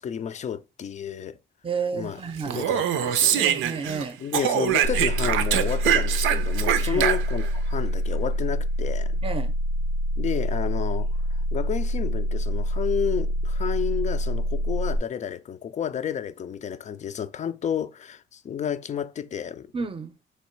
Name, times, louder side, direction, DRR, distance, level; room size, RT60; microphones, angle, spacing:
voice 1, 0.0-1.4 1.9-2.2 2.5-3.5 4.2-9.2 10.2-11.1 11.5-19.7, left 8 dB, 35° left, 0.4 m, -31 dB
voice 2, 1.6-2.7 3.3-4.2 6.8-7.1 9.2-9.5 19.7-20.2, right 5 dB, 25° right, 0.6 m, -31 dB
Speech, 2.4-4.0 4.3-7.5, right 10 dB, 85° right, 0.5 m, -24 dB
sound 1, 4.8-15.0, equal, 75° left, 0.6 m, -26 dB
3.1 x 3.0 x 4.4 m
cardioid pair, 90°, 20 cm